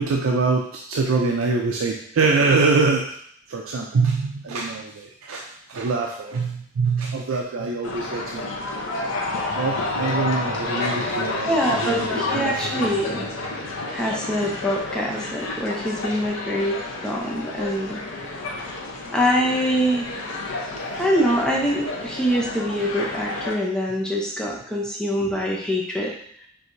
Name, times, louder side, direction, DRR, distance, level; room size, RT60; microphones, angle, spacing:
voice 1, 0.0-3.1 3.5-8.5 9.5-12.1 12.3-12.9 20.7-20.9, right 4 dB, 75° right, 0 dB, 0.5 m, -24 dB
sound 1, 7.8-23.6, left 2 dB, 75° left, 0.7 m, -30 dB
voice 2, 11.4-13.3 13.9-16.8 17.0-18.0 19.1-20.1 21.0-26.1, equal, 5° left, -2 dB, 0.7 m, -24 dB
4.6 x 3.4 x 2.6 m, 0.65 s
head